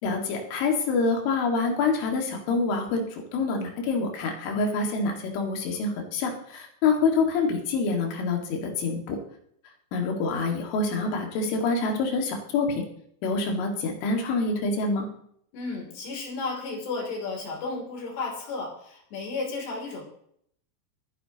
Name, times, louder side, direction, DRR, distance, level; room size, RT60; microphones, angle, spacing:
voice 1, 0.0-9.2 9.9-12.8 13.2-15.1, left 4 dB, 90° left, 2 dB, 4.4 m, -26 dB
voice 2, 15.5-20.0, left 3 dB, 65° left, 0 dB, 5.0 m, -33 dB
25.0 x 10.0 x 2.9 m, 0.68 s
omnidirectional pair, 5.4 m